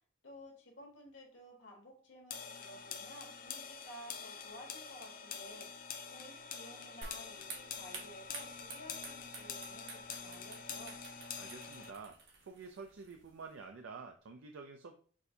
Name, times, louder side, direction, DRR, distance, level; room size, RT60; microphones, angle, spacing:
voice 1, 0.2-5.7 6.1-11.0, equal, 70° left, 1 dB, 1.3 m, -54 dB
sound 1, 2.3-11.9, left 6 dB, 45° left, 0.4 m, -46 dB
sound 2, 7.0-13.6, right 3 dB, 60° right, 0.9 m, -51 dB
voice 2, 11.4-14.9, right 4 dB, 80° right, 5 dB, 0.4 m, -49 dB
6.1 x 2.6 x 2.7 m, 0.43 s
head